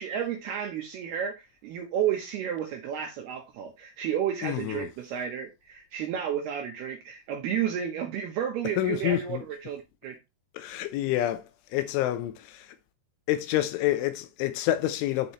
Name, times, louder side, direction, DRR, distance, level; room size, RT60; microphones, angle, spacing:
voice 1, 0.0-10.2, right 9 dB, 75° right, 2.4 m, -32 dB
voice 2, 4.4-4.9 8.8-9.4 10.5-12.8 13.3-15.3, left 13 dB, 80° left, 3.1 m, -28 dB
10.5 x 5.5 x 3.0 m
omnidirectional pair, 5.8 m